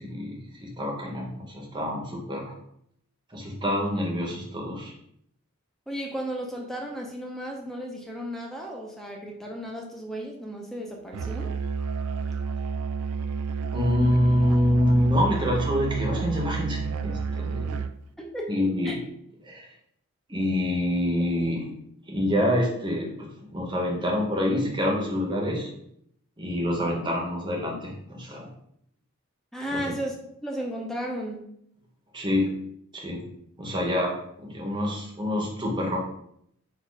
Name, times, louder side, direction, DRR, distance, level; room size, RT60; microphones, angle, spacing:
voice 1, 0.0-2.5 3.3-4.9 13.7-17.8 18.5-19.0 19.4-19.7 20.3-21.7 22.1-25.7 26.4-28.5 29.7-30.0 32.1-32.5 32.9-33.3 33.6-36.0, left 1 dB, 20° right, -1 dB, 0.9 m, -26 dB
voice 2, 5.9-11.5 18.2-18.5 18.8-18.9 29.5-30.2 30.4-31.4, equal, ahead, -1 dB, 0.6 m, -34 dB
Musical instrument, 11.1-18.0, right 5 dB, 80° right, 0.3 m, -30 dB
4.4 x 2.6 x 4.6 m, 0.72 s
head